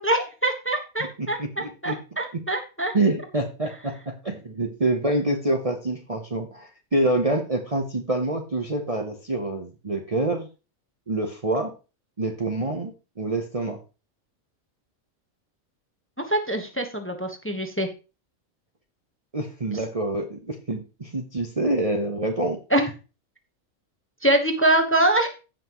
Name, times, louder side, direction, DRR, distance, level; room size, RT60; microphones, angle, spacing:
voice 1, 0.0-2.9 16.3-17.9 22.7-22.9 24.2-25.3, right 1 dB, 10° left, 6 dB, 1.0 m, -24 dB
voice 2, 1.2-2.0 2.9-10.5 11.1-11.7 12.2-12.9 13.2-13.8 19.3-22.6, right 2 dB, 30° right, 3 dB, 0.9 m, -26 dB
15.5 x 5.8 x 3.0 m, 0.31 s
omnidirectional pair, 1.5 m